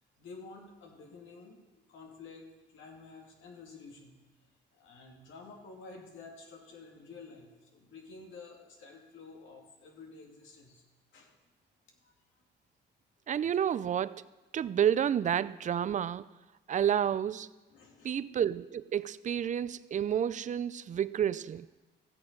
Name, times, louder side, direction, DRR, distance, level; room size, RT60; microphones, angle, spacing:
voice 1, 0.2-4.2 4.7-10.8 11.1-11.4 12.0-12.1 14.5-14.7 17.7-18.2, left 4 dB, 75° left, 2.2 m, -51 dB
voice 2, 13.3-14.3 14.5-16.3 16.7-17.5 18.0-21.7, right 9 dB, 40° right, 0.4 m, -30 dB
15.5 x 7.1 x 5.2 m
cardioid pair, 90°, 20 cm